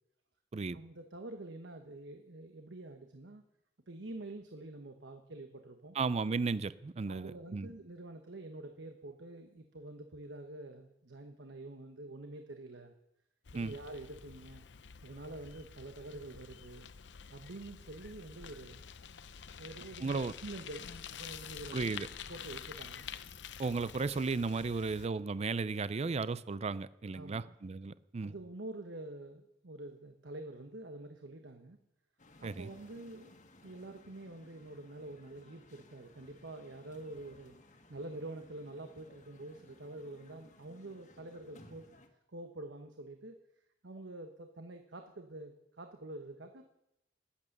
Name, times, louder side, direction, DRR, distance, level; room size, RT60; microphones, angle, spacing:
voice 1, 0.7-3.4 3.9-6.0 7.1-12.9 13.5-14.7 15.0-16.9 17.3-18.8 19.6-21.9 22.3-23.1 27.1-27.5 28.2-31.8 32.4-33.3 33.6-41.9 42.3-43.4 43.8-46.6, right 2 dB, 80° right, 6 dB, 1.1 m, -47 dB
voice 2, 5.9-7.7 13.5-13.7 20.0-20.3 21.7-22.1 23.6-28.3 32.4-32.7, right 4 dB, 35° right, 17 dB, 0.4 m, -35 dB
Bicycle, 13.5-25.1, left 7 dB, 70° left, 0.7 m, -48 dB
sound 1, 32.2-42.1, left 1 dB, 45° left, 1.6 m, -60 dB
19.5 x 8.5 x 6.6 m, 0.85 s
head